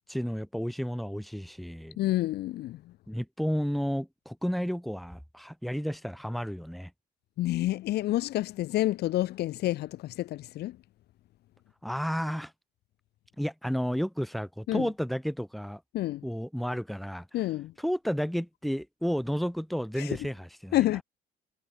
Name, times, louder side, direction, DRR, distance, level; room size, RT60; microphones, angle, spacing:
voice 1, 0.1-2.0 3.1-6.9 11.8-12.5 13.4-15.8 16.2-17.3 17.8-20.8, equal, ahead, 4.9 m, -32 dB
voice 2, 2.0-2.9 7.4-10.8 14.7-14.9 15.9-16.2 17.3-17.7 20.0-20.1 20.7-21.0, left 15 dB, 75° left, 1.8 m, -29 dB
cardioid pair, 110°, 17 cm